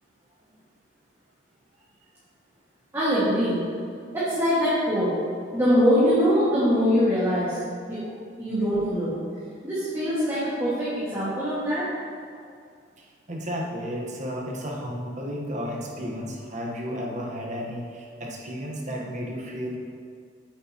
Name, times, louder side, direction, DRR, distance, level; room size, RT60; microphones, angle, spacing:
voice 1, 2.9-3.6 4.1-5.1 5.5-7.6 7.9-8.0 8.4-9.1 9.6-11.8, equal, 15° right, -12 dB, 1.9 m, -23 dB
voice 2, 13.3-19.8, equal, 40° right, -2 dB, 1.2 m, -33 dB
9.1 x 7.9 x 3.0 m, 2.2 s
head